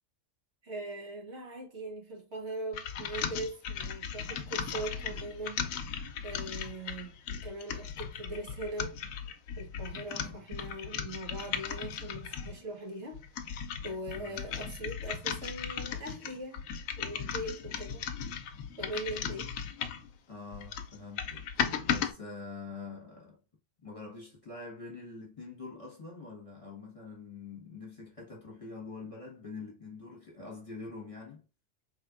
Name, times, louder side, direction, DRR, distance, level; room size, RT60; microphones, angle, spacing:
voice 1, 0.6-5.9 6.2-7.2 7.4-9.0 9.6-13.5 13.8-16.6 17.0-18.1 18.8-19.5, right 1 dB, 60° right, 1.5 m, -41 dB
sound 1, 2.7-12.6 13.1-20.1 20.5-22.1, left 7 dB, 85° left, 1.0 m, -37 dB
voice 2, 10.1-10.5 13.8-14.4 19.1-19.3 20.3-21.5 21.8-23.4 23.8-31.4, left 4 dB, 25° left, 1.3 m, -45 dB
4.2 x 3.3 x 2.4 m
omnidirectional pair, 1.3 m